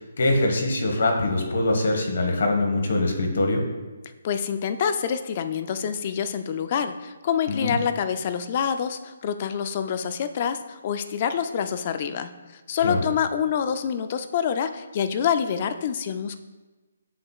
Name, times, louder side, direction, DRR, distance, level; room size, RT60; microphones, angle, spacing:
voice 1, 0.0-3.6 7.5-7.8 12.8-13.0, left 2 dB, 50° left, 2 dB, 1.2 m, -23 dB
voice 2, 4.2-12.3 12.7-16.4, left 7 dB, 25° left, 10 dB, 0.3 m, -26 dB
7.6 x 7.4 x 2.3 m, 1.2 s
hypercardioid pair, 180°, 0 cm